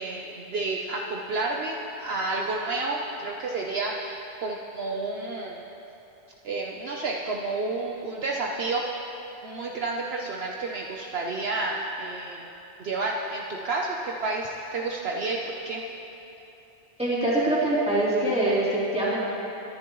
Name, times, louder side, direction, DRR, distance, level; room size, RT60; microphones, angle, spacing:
voice 1, 0.0-5.6 6.4-8.9 9.4-12.4 12.8-15.8, right 3 dB, 60° right, -1 dB, 1.0 m, -30 dB
voice 2, 17.0-19.2, right 1 dB, 5° right, -9 dB, 3.3 m, -24 dB
23.0 x 10.5 x 3.1 m, 3.0 s
omnidirectional pair, 1.2 m